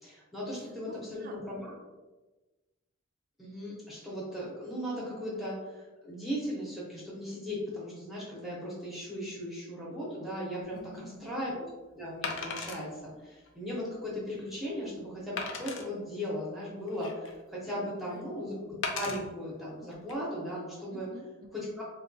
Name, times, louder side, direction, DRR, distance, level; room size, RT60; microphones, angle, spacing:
voice 1, 0.0-1.7 3.4-10.8 11.2-11.7 11.9-18.5 18.9-21.1 21.8-21.9, equal, ahead, -7 dB, 0.8 m, -37 dB
voice 2, 0.6-1.5 10.7-11.3 17.8-18.5 20.9-21.7, right 1 dB, 45° right, 5 dB, 0.3 m, -49 dB
Wood, 10.6-10.8 12.2-12.8 13.5-13.6 14.1-14.2 15.4-15.9 16.6-17.4 18.8-19.2 19.9-20.1, left 4 dB, 65° left, 0.4 m, -36 dB
3.5 x 2.2 x 2.6 m, 1.2 s
head